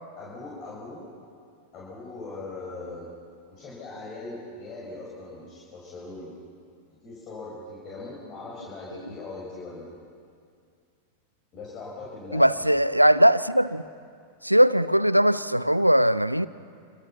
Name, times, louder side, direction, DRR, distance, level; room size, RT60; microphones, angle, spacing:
voice 1, 0.2-1.1 1.7-3.1 3.5-6.3 7.0-10.0 11.5-12.8, left 3 dB, 35° left, -5 dB, 6.7 m, -40 dB
voice 2, 12.3-13.8 14.4-16.5, equal, 90° right, 18 dB, 0.6 m, -20 dB
27.5 x 26.5 x 5.9 m, 2.2 s
figure-of-eight pair, 90°, 0 cm